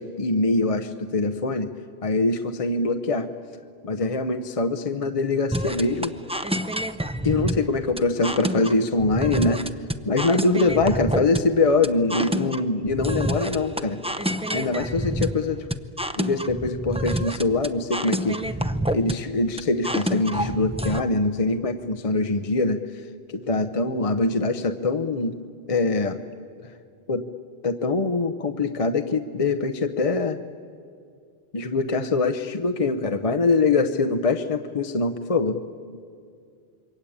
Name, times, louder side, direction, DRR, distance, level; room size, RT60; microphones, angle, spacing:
voice 1, 0.0-1.7 2.0-3.3 3.8-6.1 7.2-9.7 10.0-14.0 14.5-15.7 16.2-18.4 18.9-22.8 23.3-25.4 25.7-26.2 26.6-26.7 27.1-27.3 27.6-30.4 31.5-35.6, left 3 dB, 35° left, 9 dB, 0.8 m, -23 dB
sound 1, 5.5-21.0, equal, 10° right, 0.5 m, -28 dB
27.5 x 23.0 x 8.6 m, 2.3 s
omnidirectional pair, 1.0 m